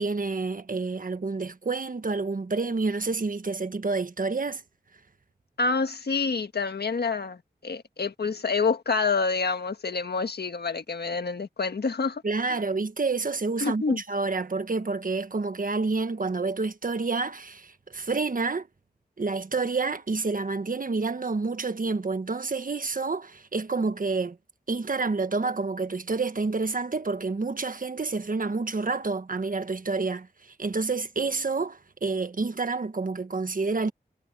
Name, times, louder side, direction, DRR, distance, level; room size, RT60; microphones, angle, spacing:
voice 1, 0.0-4.6 12.2-18.7 19.2-24.4 24.7-33.9, right 3 dB, 55° right, 1.4 m, -28 dB
voice 2, 5.6-12.2 12.5-12.6 13.6-14.0, left 4 dB, 70° left, 1.6 m, -27 dB
wide cardioid pair, 65°, 17 cm